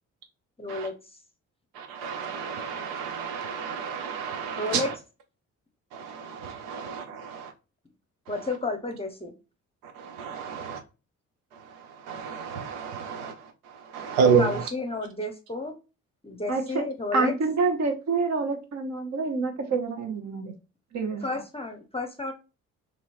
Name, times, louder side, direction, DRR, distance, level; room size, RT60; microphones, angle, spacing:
voice 1, 0.6-0.9 4.5-4.9 8.3-9.3 14.4-15.7 16.2-17.3 21.2-22.3, left 2 dB, 15° left, 0.7 m, -31 dB
voice 2, 1.7-4.9 5.9-7.5 9.8-10.8 11.5-14.7, right 6 dB, 80° right, 0.7 m, -30 dB
voice 3, 16.5-16.8 17.1-20.5 20.9-21.2, right 4 dB, 45° right, 1.0 m, -27 dB
2.9 x 2.9 x 2.5 m
hypercardioid pair, 45°, 37 cm